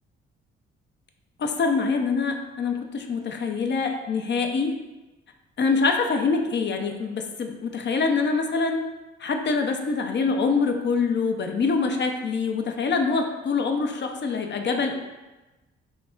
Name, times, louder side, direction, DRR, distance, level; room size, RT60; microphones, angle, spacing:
voice 1, 1.4-4.7 5.6-8.8 9.2-15.0, left 4 dB, 40° left, 4 dB, 0.5 m, -25 dB
4.9 x 2.0 x 2.3 m, 1.1 s
hypercardioid pair, 45°, 29 cm